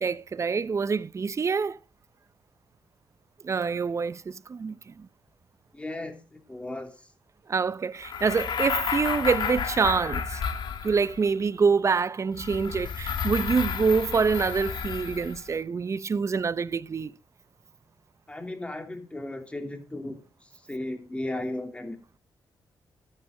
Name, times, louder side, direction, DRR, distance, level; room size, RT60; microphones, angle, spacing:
voice 1, 0.0-1.8 3.4-4.7 7.5-10.4 10.8-17.1, right 5 dB, 40° right, 0.6 m, -26 dB
voice 2, 5.7-6.9 18.3-22.0, left 1 dB, 15° left, 2.9 m, -36 dB
sound 1, 8.0-11.3 12.3-15.5, left 7 dB, 80° left, 1.7 m, -31 dB
13.5 x 9.7 x 3.8 m
cardioid pair, 90°, 8 cm